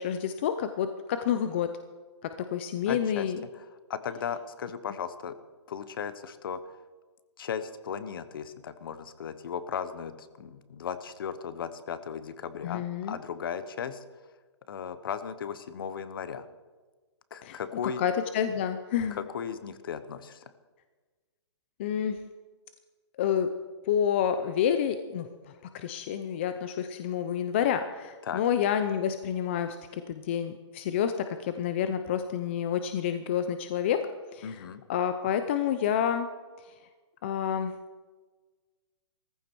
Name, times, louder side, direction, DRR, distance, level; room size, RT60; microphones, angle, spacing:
voice 1, 0.0-1.8 2.2-3.4 12.6-13.2 17.4-17.6 18.0-19.2 21.8-22.2 23.2-23.5 23.9-34.1 34.3-34.6 34.9-36.3 36.6-36.7 37.2-37.8, left 9 dB, 25° left, 9 dB, 0.5 m, -29 dB
voice 2, 2.9-3.3 3.5-5.4 5.7-6.8 7.4-14.0 14.7-16.5 17.3-18.0 19.1-20.4 28.2-28.4 34.4-34.8, left 7 dB, 50° left, 13 dB, 1.0 m, -36 dB
15.5 x 14.5 x 4.6 m, 1.4 s
hypercardioid pair, 170°, 15 cm